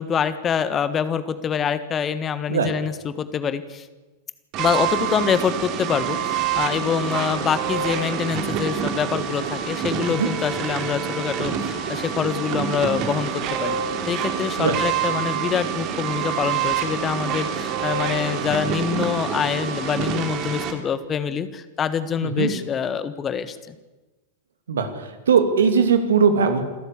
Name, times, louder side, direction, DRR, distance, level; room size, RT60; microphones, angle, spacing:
voice 1, 0.0-3.9 4.6-13.8 14.1-23.6, left 7 dB, 25° left, 13 dB, 1.4 m, -25 dB
sound 1, 4.5-20.7, right 8 dB, 40° right, 3.0 m, -26 dB
voice 2, 24.7-26.6, right 6 dB, 65° right, 8 dB, 2.6 m, -20 dB
27.5 x 13.0 x 8.4 m, 1.2 s
figure-of-eight pair, 90°, 0 cm